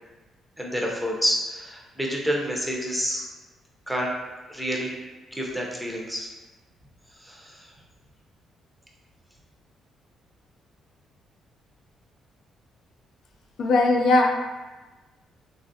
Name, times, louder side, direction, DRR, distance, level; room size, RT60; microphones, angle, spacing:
voice 1, 0.6-3.3 3.9-4.1 4.5-4.9 5.3-6.3 7.2-7.7, equal, ahead, -2 dB, 0.6 m, -28 dB
voice 2, 13.6-14.3, left 2 dB, 65° left, 2 dB, 0.4 m, -19 dB
3.2 x 2.4 x 2.6 m, 1.2 s
cardioid pair, 90°, 0 cm